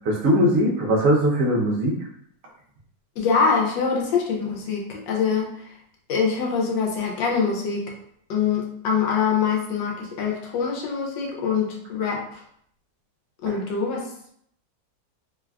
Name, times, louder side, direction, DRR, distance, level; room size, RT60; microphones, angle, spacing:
voice 1, 0.0-1.9 13.5-13.6, equal, 65° right, -2 dB, 0.8 m, -20 dB
voice 2, 3.2-5.7 6.1-7.9 8.3-12.4 13.4-14.1, left 5 dB, 85° left, 0 dB, 1.3 m, -24 dB
3.2 x 2.3 x 2.2 m, 0.67 s
omnidirectional pair, 2.0 m